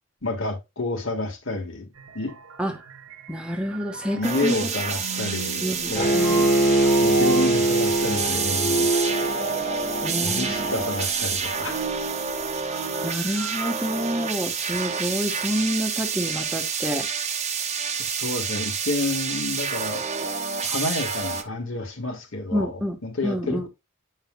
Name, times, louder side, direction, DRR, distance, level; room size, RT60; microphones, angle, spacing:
voice 1, 0.2-1.9 2.1-2.3 4.2-5.6 5.9-6.2 7.0-8.9 10.2-11.8 18.0-20.0 20.6-23.7, left 2 dB, 65° left, 1.7 m, -29 dB
sound 1, 1.9-13.7, right 4 dB, 70° right, 1.0 m, -36 dB
voice 2, 3.3-4.7 5.6-6.4 10.0-10.9 13.0-17.1 22.5-23.0 23.2-23.7, equal, 5° right, 1.2 m, -28 dB
sound 2, 4.2-21.4, right 6 dB, 30° right, 1.0 m, -28 dB
Bowed string instrument, 5.9-11.0, right 1 dB, 40° left, 1.8 m, -23 dB
8.8 x 5.7 x 2.3 m
head